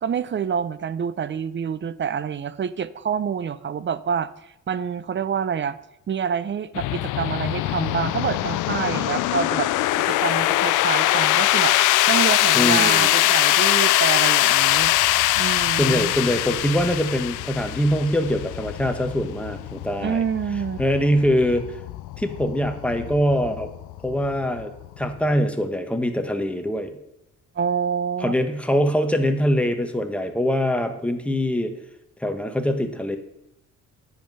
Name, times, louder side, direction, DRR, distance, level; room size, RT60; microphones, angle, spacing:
voice 1, 0.0-4.3 4.7-5.8 6.1-9.7 10.0-11.8 12.1-14.9 15.4-16.1 20.0-20.8 27.6-28.4, right 7 dB, 40° right, 16 dB, 0.6 m, -27 dB
sound 1, 6.7-25.4, left 16 dB, 85° left, 0.5 m, -22 dB
voice 2, 12.5-13.1 15.8-20.2 20.8-21.6 22.2-23.7 24.0-27.0 28.2-31.7 32.2-33.2, equal, 5° left, 6 dB, 1.4 m, -23 dB
10.5 x 7.5 x 5.5 m, 0.83 s
cardioid pair, 90°, 30 cm